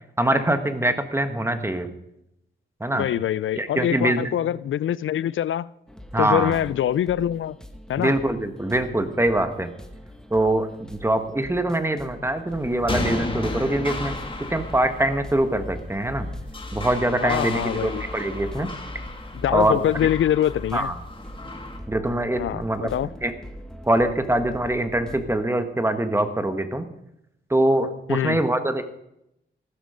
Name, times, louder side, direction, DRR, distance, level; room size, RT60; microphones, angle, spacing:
voice 1, 0.2-1.9 2.8-3.1 3.6-4.3 6.1-6.6 8.0-9.7 10.3-14.1 14.5-16.3 16.7-18.7 19.5-19.8 20.7-20.9 21.9-22.9 23.2-23.3 23.9-26.9 27.5-28.8, right 1 dB, 10° right, 1.6 m, -23 dB
voice 2, 2.9-5.7 6.2-7.6 7.9-8.1 17.2-18.0 19.3-20.9 22.4-23.1 28.1-28.4, left 11 dB, 80° left, 0.4 m, -24 dB
sound 1, 5.9-25.3, left 1 dB, 5° left, 1.6 m, -40 dB
sound 2, 12.5-21.8, left 2 dB, 25° left, 2.3 m, -34 dB
15.0 x 12.5 x 5.1 m
wide cardioid pair, 100°, 20 cm